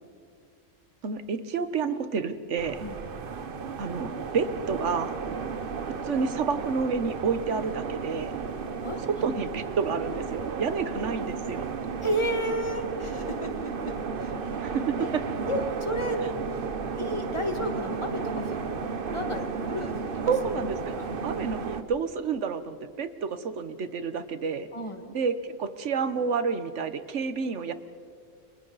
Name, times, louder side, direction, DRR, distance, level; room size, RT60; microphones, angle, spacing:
voice 1, 1.0-2.8 3.8-5.1 6.0-8.3 9.1-11.7 14.6-14.9 20.3-20.8 21.2-24.7 25.1-27.7, right 5 dB, 70° right, 11 dB, 1.3 m, -29 dB
sound 1, 2.6-21.8, right 5 dB, 50° right, 1.1 m, -33 dB
voice 2, 8.8-9.3 12.0-14.3 14.7-15.1 15.5-16.2 17.0-18.6 19.1-20.3 21.0-21.1 24.7-25.1, equal, 25° left, 4 dB, 1.9 m, -32 dB
29.5 x 27.5 x 4.1 m, 2.2 s
omnidirectional pair, 1.3 m